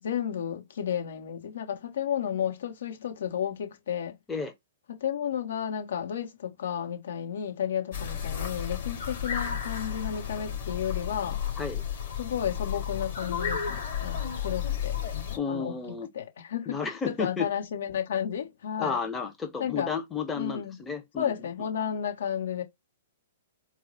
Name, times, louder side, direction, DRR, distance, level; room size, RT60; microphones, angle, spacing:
voice 1, 0.0-4.1 4.9-11.4 12.2-15.0 15.5-16.8 17.1-19.0 19.6-19.9 20.4-20.8 21.2-22.6, left 9 dB, 65° left, 1.2 m, -32 dB
sound 1, 7.9-15.4, left 8 dB, 50° left, 2.4 m, -32 dB
voice 2, 15.4-16.1 16.7-17.5 18.8-21.5, left 5 dB, 15° left, 0.8 m, -32 dB
4.5 x 2.1 x 4.0 m
hypercardioid pair, 120°, 0 cm